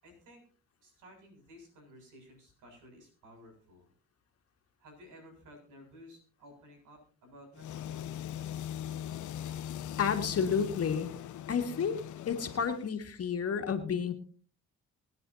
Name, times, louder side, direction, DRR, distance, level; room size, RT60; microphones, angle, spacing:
voice 1, 0.0-0.4 0.8-3.9 4.8-8.1, equal, 85° right, 3 dB, 7.3 m, -55 dB
sound 1, 7.5-12.9, left 10 dB, 75° left, 0.9 m, -40 dB
voice 2, 10.0-11.1 11.5-12.0 12.3-14.1, left 6 dB, 55° left, 5 dB, 2.1 m, -30 dB
25.0 x 9.6 x 2.8 m, 0.39 s
cardioid pair, 90°, 30 cm